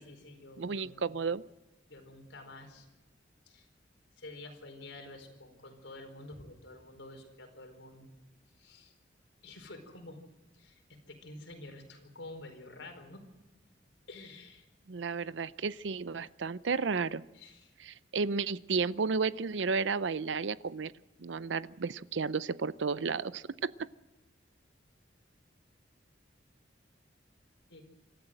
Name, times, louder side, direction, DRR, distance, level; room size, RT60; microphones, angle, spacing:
voice 1, 0.0-1.1 1.9-2.9 3.5-3.7 4.2-8.1 8.6-8.9 9.4-10.2 10.5-13.2 14.1-14.7 17.3-17.7 27.7-27.8, left 2 dB, 85° left, 5 dB, 4.6 m, -49 dB
voice 2, 0.6-1.4 14.9-17.2 17.8-20.9 21.2-23.9, right 5 dB, 80° right, 17 dB, 0.6 m, -33 dB
26.0 x 14.0 x 7.8 m, 1.0 s
head